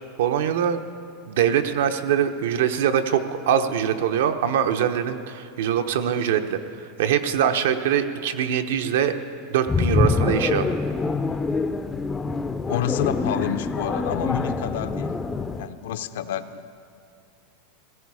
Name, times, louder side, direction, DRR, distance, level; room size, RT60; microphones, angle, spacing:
voice 1, 0.2-0.8 1.3-9.2 9.5-10.7, right 9 dB, 75° right, 8 dB, 0.8 m, -23 dB
sound 1, 9.7-15.7, left 4 dB, 10° left, 0.4 m, -25 dB
voice 2, 12.7-15.2 15.6-16.7, left 10 dB, 75° left, 10 dB, 0.6 m, -29 dB
17.0 x 14.5 x 4.8 m, 2.4 s
supercardioid pair, 170°, 0 cm